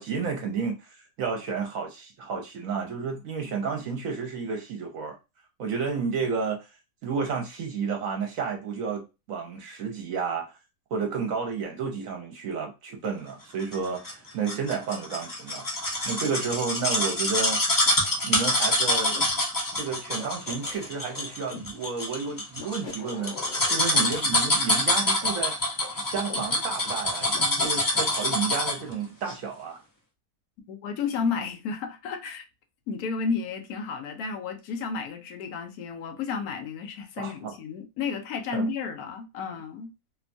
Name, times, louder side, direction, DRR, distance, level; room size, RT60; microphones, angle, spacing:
voice 1, 0.0-5.2 5.6-6.7 7.0-10.6 10.9-15.6 16.0-17.6 18.2-19.2 19.7-23.4 23.7-25.5 26.1-29.8 37.2-37.5 38.5-38.6, right 5 dB, 70° right, 1.0 m, -31 dB
sound 1, 13.7-28.9 29.3-29.4, left 1 dB, 30° left, 0.3 m, -26 dB
sound 2, 19.1-19.3 20.2-21.7 22.5-24.1 24.9-26.4 27.3-28.6, left 4 dB, 60° left, 1.0 m, -43 dB
voice 2, 30.7-32.5 32.9-39.9, left 5 dB, 85° left, 1.1 m, -32 dB
2.9 x 2.2 x 2.5 m
omnidirectional pair, 1.5 m